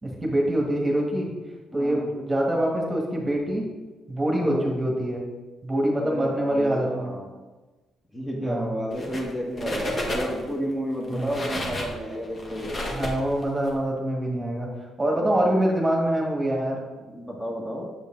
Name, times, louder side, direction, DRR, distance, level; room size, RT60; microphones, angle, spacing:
voice 1, 0.0-1.3 1.7-3.6 4.1-5.2 5.6-7.1 8.4-8.7 11.1-11.4 12.9-14.7 15.0-16.8, right 1 dB, 15° right, -1 dB, 1.6 m, -25 dB
voice 2, 1.7-2.1 4.3-4.6 5.9-7.3 8.1-12.8 15.1-15.6 17.0-17.9, equal, 15° left, -2 dB, 1.5 m, -32 dB
sound 1, 8.9-9.3 9.6-10.5 11.0-13.7, left 1 dB, 40° left, 1.6 m, -31 dB
7.4 x 5.3 x 3.8 m, 1.2 s
cardioid pair, 90°, 0 cm